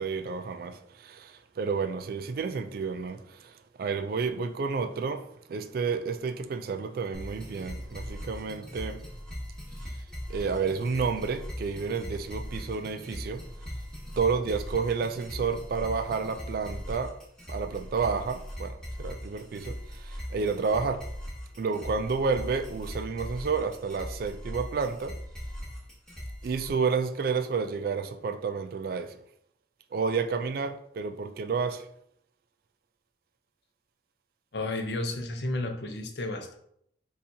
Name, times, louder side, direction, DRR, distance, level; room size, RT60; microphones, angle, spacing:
voice 1, 0.0-5.2 5.5-9.1 10.3-13.4 14.1-17.1 17.5-21.1 21.6-25.2 26.4-29.2 29.9-31.9, right 5 dB, 50° right, 0.3 m, -30 dB
sound 1, 7.1-26.7, equal, 5° left, 1.1 m, -40 dB
voice 2, 34.5-36.6, left 2 dB, 65° left, 0.6 m, -32 dB
6.9 x 2.4 x 2.7 m
head